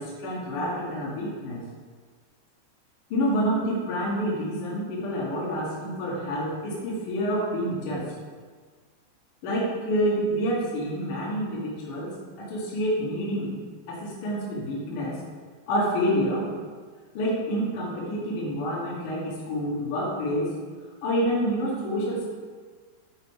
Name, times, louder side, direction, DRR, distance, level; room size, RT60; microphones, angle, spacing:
voice 1, 0.0-1.6 3.1-8.1 9.4-13.6 13.9-15.2 15.7-16.5 17.1-20.6 21.0-22.3, equal, 60° left, -5 dB, 2.5 m, -28 dB
8.0 x 7.9 x 4.5 m, 1.5 s
omnidirectional pair, 5.1 m